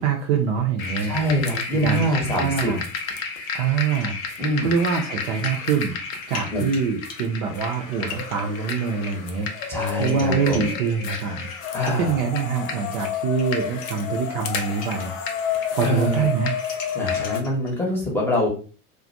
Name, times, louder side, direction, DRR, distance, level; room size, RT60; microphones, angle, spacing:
voice 1, 0.0-1.1 1.8-2.0 2.4-2.8 3.5-4.2 4.6-6.0 6.3-11.5 11.9-15.1 15.7-16.6, right 6 dB, 45° right, 2 dB, 0.5 m, -24 dB
sound 1, 0.8-17.4, left 6 dB, 60° left, 0.6 m, -31 dB
voice 2, 1.0-2.7 4.4-4.7 6.5-6.6 9.7-10.7 11.7-12.2 15.8-16.3 16.9-18.5, equal, 5° left, -3 dB, 0.8 m, -24 dB
sound 2, 1.9-3.2 3.5-3.6 4.0-4.2 5.2-5.6 6.0-12.2 12.9-13.0 13.3-15.7 15.9-17.8, left 4 dB, 20° left, 0.3 m, -42 dB
2.4 x 2.1 x 2.5 m, 0.37 s
figure-of-eight pair, 80°, 46 cm